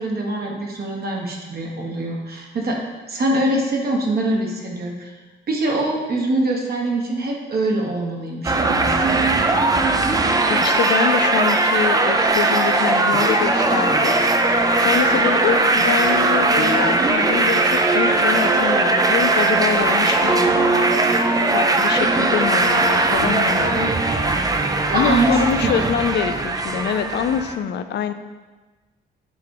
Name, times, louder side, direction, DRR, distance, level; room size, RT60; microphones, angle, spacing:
voice 1, 0.0-2.8 3.1-5.1 5.5-9.5 24.9-25.9, right 2 dB, 50° right, 0 dB, 1.2 m, -23 dB
sound 1, 8.4-27.5, right 2 dB, 20° right, 0.5 m, -19 dB
voice 2, 10.5-14.2 14.7-23.9 24.9-28.1, left 8 dB, 60° left, 10 dB, 0.5 m, -25 dB
7.0 x 3.3 x 4.7 m, 1.3 s
cardioid pair, 90°, 20 cm